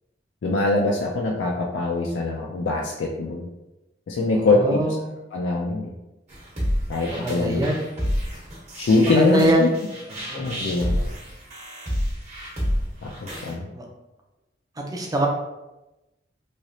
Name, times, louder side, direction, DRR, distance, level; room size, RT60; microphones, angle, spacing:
voice 1, 0.4-3.5 4.1-4.9 5.3-5.9 6.9-7.6 8.7-9.7 10.3-11.0 13.0-13.7, left 2 dB, 80° left, -1 dB, 0.4 m, -23 dB
voice 2, 4.3-5.0 7.1-7.8 9.1-9.7 10.1-10.5 13.7-13.8 14.8-15.3, equal, 20° right, 0 dB, 0.5 m, -23 dB
sound 1, 6.3-13.5, equal, 40° right, 1.0 m, -29 dB
3.2 x 2.8 x 2.7 m, 0.99 s
head